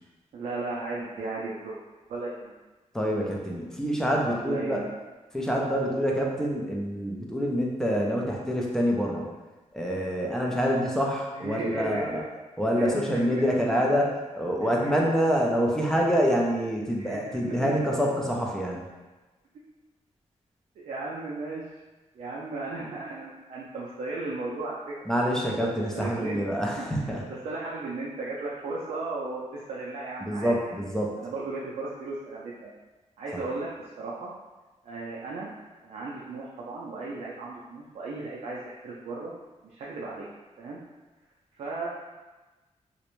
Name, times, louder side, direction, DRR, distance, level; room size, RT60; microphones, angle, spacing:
voice 1, 0.3-1.8 2.1-2.5 4.2-4.9 11.3-12.2 12.7-13.8 14.6-15.0 17.0-17.7 19.5-19.6 20.8-21.6 22.1-24.9 25.9-26.5 26.8-30.7 31.2-32.7 33.2-33.7 34.0-34.3 34.8-35.5 35.8-39.3 39.6-40.3 40.6-40.8 41.5-41.9, right 3 dB, 65° right, -5 dB, 0.4 m, -35 dB
voice 2, 2.9-4.9 5.3-9.3 9.7-12.2 12.6-18.9 25.1-27.2 30.2-31.1 33.3-33.4, equal, 5° left, -2 dB, 0.3 m, -26 dB
2.5 x 2.1 x 3.0 m, 1.2 s
wide cardioid pair, 155°, 12 cm